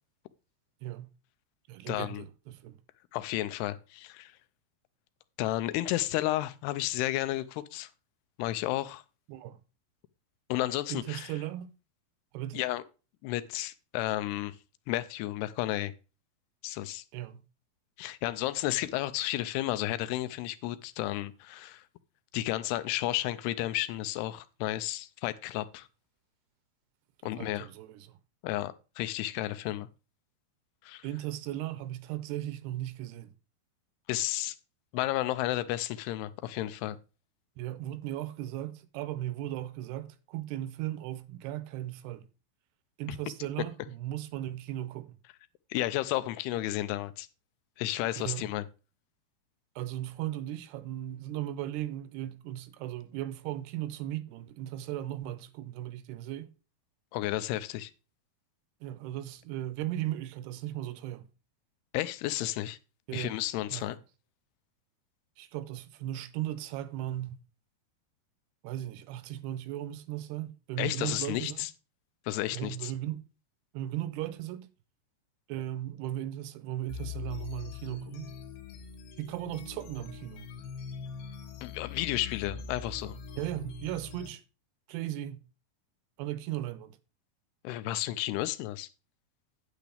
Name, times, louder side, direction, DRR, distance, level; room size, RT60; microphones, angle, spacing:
voice 1, 0.8-1.1 1.7-2.8 9.3-9.6 10.9-11.7 12.3-12.6 17.1-17.5 27.4-28.2 31.0-33.3 37.6-42.3 43.0-45.2 48.2-48.5 49.8-56.5 58.8-61.3 63.1-63.4 63.7-64.0 65.4-67.4 68.6-71.6 72.5-73.3 73.7-74.7 75.5-78.3 79.2-80.5 83.4-84.4 84.9-85.5 86.2-87.0, right 13 dB, 85° right, 2.8 m, -37 dB
voice 2, 1.9-2.2 3.1-4.3 5.4-7.9 8.4-9.0 10.5-11.3 12.5-12.8 13.2-14.6 14.9-15.9 16.6-17.0 18.0-21.8 22.3-25.9 27.2-27.7 28.4-29.9 30.8-31.1 34.1-34.6 34.9-37.0 45.7-47.3 47.8-48.7 57.1-57.9 61.9-62.8 63.1-64.0 70.8-71.7 72.3-72.9 81.6-83.2 87.6-88.9, left 15 dB, 85° left, 2.7 m, -32 dB
sound 1, 76.9-84.3, left 7 dB, 70° left, 3.0 m, -42 dB
9.2 x 8.5 x 3.4 m
omnidirectional pair, 4.6 m